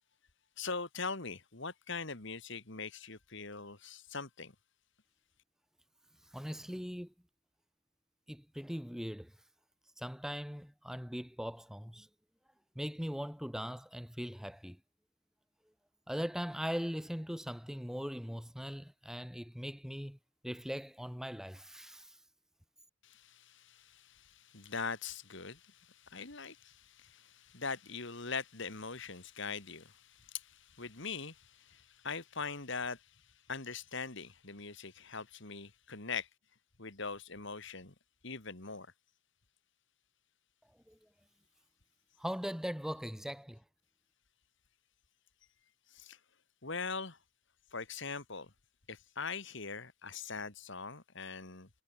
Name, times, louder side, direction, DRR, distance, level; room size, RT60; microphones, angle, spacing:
voice 1, 0.6-4.5 23.0-33.1 33.5-36.3 36.8-37.9 38.2-38.9 45.9-46.2 46.6-47.2 47.7-48.5 48.9-51.7, left 4 dB, 55° left, 2.4 m, -42 dB
voice 2, 6.3-7.1 8.3-9.3 10.0-12.1 12.8-14.8 16.1-20.2 20.4-22.2 40.9-41.0 42.2-43.6, equal, ahead, 2.3 m, -40 dB
head